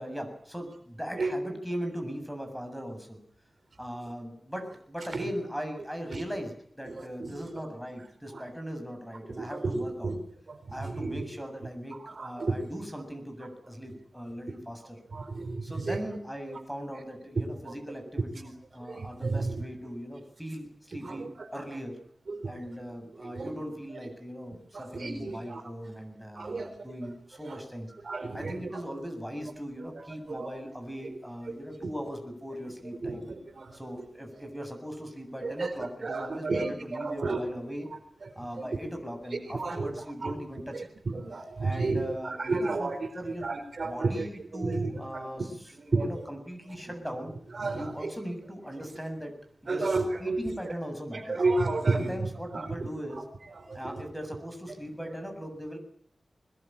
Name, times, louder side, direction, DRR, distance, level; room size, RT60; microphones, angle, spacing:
voice 1, 0.0-3.2 3.8-10.1 10.7-15.0 15.6-22.0 22.5-27.9 28.3-33.3 33.7-37.9 38.3-40.9 41.6-43.5 43.8-45.5 46.0-47.3 47.7-49.4 49.6-49.8 50.2-51.4 51.9-53.2 53.7-55.8, equal, ahead, 5 dB, 7.6 m, -39 dB
voice 2, 6.8-7.6 8.3-8.4 9.2-10.2 10.5-11.3 12.0-12.7 15.1-16.0 16.5-16.6 17.3-17.7 18.8-19.6 20.9-21.5 22.3-22.8 23.1-23.6 24.0-24.1 24.7-25.6 26.3-27.1 27.4-27.6 28.0-28.8 29.9-30.5 31.0-31.2 31.4-31.9 33.0-34.0 34.4-34.5 35.4-37.4 38.2-38.7 39.3-39.9 40.2-40.3 40.7-45.5 45.7-46.2 47.5-48.1 49.7-50.8 51.1-52.9 53.1-53.2 53.5-54.0, right 3 dB, 60° right, 7 dB, 4.4 m, -33 dB
22.5 x 21.0 x 8.9 m, 0.65 s
wide cardioid pair, 115°, 0 cm